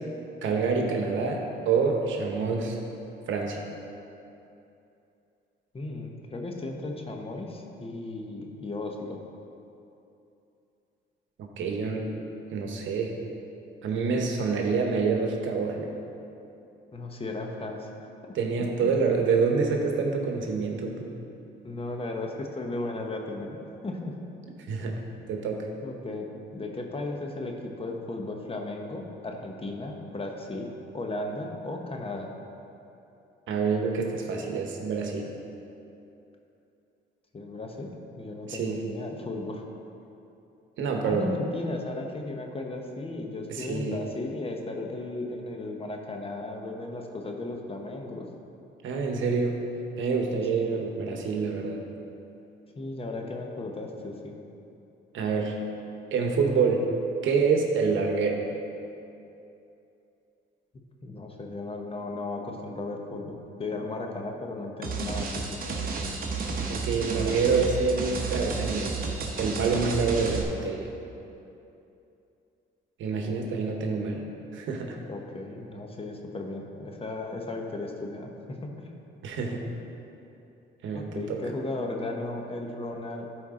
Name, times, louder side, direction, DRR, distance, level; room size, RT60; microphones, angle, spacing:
voice 1, 0.4-2.8 3.3-3.6 11.4-12.1 12.5-13.1 13.8-15.9 18.3-21.1 24.7-25.0 25.3-25.7 33.5-35.3 38.5-38.8 40.8-41.3 43.5-44.0 48.8-49.6 50.0-51.8 55.1-55.6 56.1-56.8 57.2-58.4 66.7-69.0 69.4-70.9 73.0-74.2 74.5-75.0 79.2-79.6 80.8-81.4, right 5 dB, 75° right, 2 dB, 1.1 m, -27 dB
voice 2, 5.7-9.2 16.9-18.9 21.6-24.1 25.8-26.3 26.5-32.3 37.3-37.9 38.2-39.6 41.0-48.3 50.5-50.8 52.8-54.3 61.0-65.6 75.1-78.9 80.9-83.3, left 2 dB, 30° left, 2 dB, 1.0 m, -35 dB
sound 1, 64.8-70.4, right 4 dB, 45° right, 1.1 m, -31 dB
12.5 x 4.5 x 3.7 m, 2.8 s
cardioid pair, 90°, 20 cm